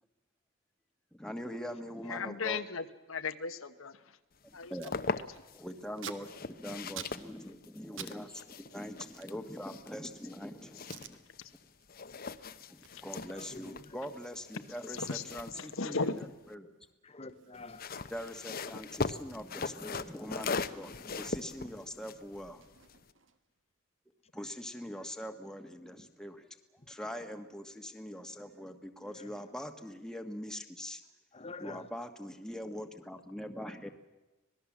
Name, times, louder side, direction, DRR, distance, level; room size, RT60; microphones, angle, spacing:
voice 1, 1.1-2.6 4.7-4.9 5.5-11.2 12.7-16.7 18.1-22.6 24.3-26.4 26.9-31.0 31.6-33.9, equal, 5° left, 5 dB, 1.5 m, -43 dB
voice 2, 2.0-4.2 4.5-5.0 10.8-10.9 11.4-11.5 12.9-13.0 14.9-15.2 15.5-16.3, left 4 dB, 75° left, 9 dB, 1.2 m, -37 dB
Packing tape duct tape, 4.3-4.4 4.5-5.0 5.3-8.2 8.4-10.3 10.8-11.2 11.6-11.9 12.2-18.4 18.7-18.8 19.0-21.4 21.7-23.6, right 7 dB, 65° right, 1.5 m, -51 dB
sound 1, 4.5-5.6 6.2-11.6 11.9-16.5 17.5-23.1, left 4 dB, 45° left, 0.9 m, -40 dB
voice 3, 13.3-14.0 17.0-17.8 20.2-20.3 26.0-26.1 26.8-26.9 29.0-29.5 31.3-31.9, left 3 dB, 30° left, 10 dB, 1.1 m, -48 dB
25.5 x 19.0 x 7.4 m, 1.1 s
head